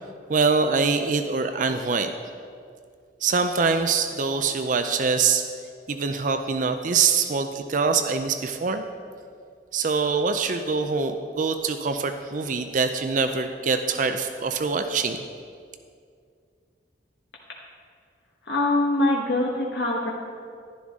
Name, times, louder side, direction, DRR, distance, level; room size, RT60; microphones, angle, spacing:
voice 1, 0.3-2.1 3.2-5.4 5.9-8.8 9.7-15.2, right 5 dB, 45° right, 8 dB, 0.5 m, -24 dB
voice 2, 18.4-20.1, left 2 dB, 70° left, -3 dB, 1.2 m, -23 dB
11.5 x 11.0 x 3.6 m, 2.2 s
head